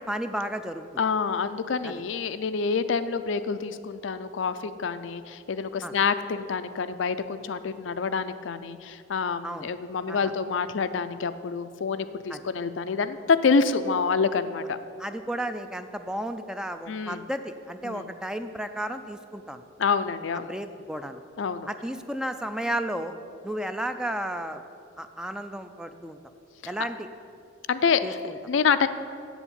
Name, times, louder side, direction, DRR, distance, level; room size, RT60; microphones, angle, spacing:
voice 1, 0.0-0.9 1.8-1.9 5.8-5.9 9.4-9.7 10.1-10.2 12.3-12.4 15.0-19.6 20.5-21.2 21.7-23.1 23.4-24.6 25.0-26.2 26.7-27.1 28.0-28.4, right 1 dB, 5° right, 9 dB, 0.3 m, -33 dB
voice 2, 1.0-14.8 16.9-17.2 17.8-18.1 19.8-20.5 21.4-21.7 26.6-26.7 27.7-28.2 28.5-28.9, left 5 dB, 70° left, 11 dB, 0.5 m, -27 dB
7.9 x 7.2 x 8.6 m, 2.5 s
head